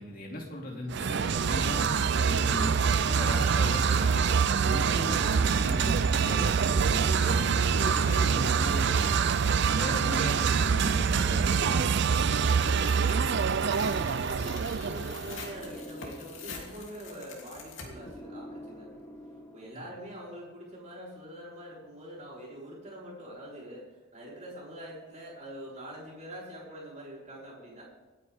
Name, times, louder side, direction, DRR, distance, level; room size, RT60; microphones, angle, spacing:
voice 1, 0.0-4.3 4.6-9.2 9.6-12.9 13.2-13.4, left 1 dB, 40° left, 0 dB, 2.5 m, -38 dB
sound 1, 0.9-15.6, right 6 dB, 50° right, 0.4 m, -25 dB
Tearing, 12.0-18.2, left 4 dB, 65° left, 2.9 m, -45 dB
voice 2, 13.5-18.9 19.5-23.9 24.1-27.8, equal, 35° right, -5 dB, 5.1 m, -44 dB
sound 2, 15.5-20.1, equal, 10° left, 2.0 m, -48 dB
26.5 x 9.4 x 3.6 m, 1.2 s
head